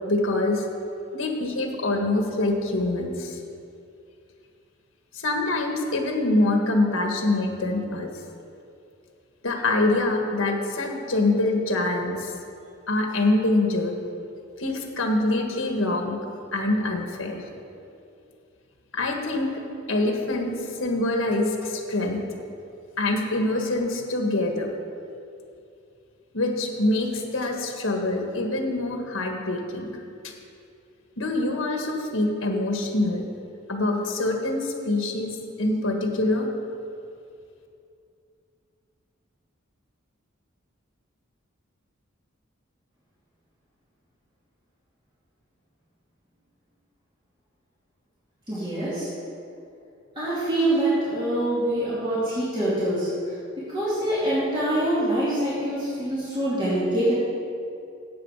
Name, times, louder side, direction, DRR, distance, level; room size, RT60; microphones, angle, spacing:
voice 1, 0.1-0.6 1.1-3.4 5.2-8.1 9.4-12.3 12.9-14.0 14.6-16.2 16.5-17.4 18.9-19.5 19.9-20.5 20.8-22.2 23.0-24.7 26.3-29.9 30.2-30.3 31.2-33.2 33.7-36.5, left 2 dB, 75° left, 2 dB, 1.6 m, -25 dB
voice 2, 48.5-49.1 50.2-53.1 53.6-57.1, right 1 dB, 25° right, -11 dB, 2.7 m, -25 dB
12.0 x 8.4 x 4.8 m, 2.5 s
head